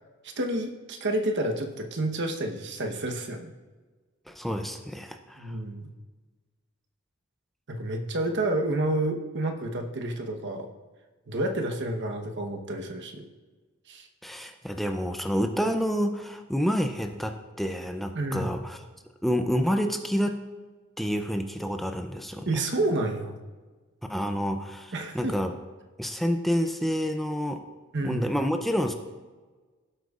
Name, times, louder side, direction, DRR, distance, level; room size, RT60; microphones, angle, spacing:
voice 1, 0.2-3.5 5.4-5.9 7.7-10.7 11.3-13.3 13.9-14.1 18.1-18.5 22.5-23.4 24.9-25.3 27.9-28.3, right 1 dB, 60° right, 4 dB, 1.0 m, -29 dB
voice 2, 4.3-5.6 14.2-18.8 19.2-20.4 21.0-22.6 24.1-25.5 26.0-27.6 28.0-28.9, equal, ahead, 5 dB, 0.4 m, -28 dB
16.5 x 7.9 x 2.4 m, 1.3 s
head